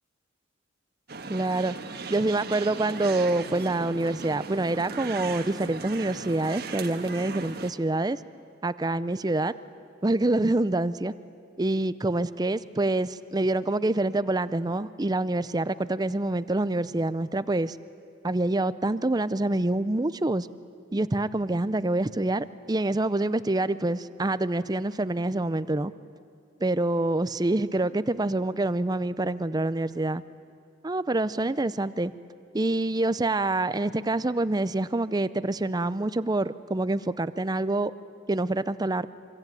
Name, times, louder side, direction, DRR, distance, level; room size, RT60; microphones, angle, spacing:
sound 1, 1.1-7.7, right 4 dB, 55° right, 1.6 m, -38 dB
voice 1, 1.3-1.7 2.1-8.2 8.6-9.5 10.0-11.1 11.6-17.8 18.2-20.5 20.9-25.9 26.6-30.2 30.8-32.1 32.5-37.9 38.3-39.1, right 2 dB, 20° right, 15 dB, 0.6 m, -26 dB
26.0 x 24.5 x 9.1 m, 2.5 s
head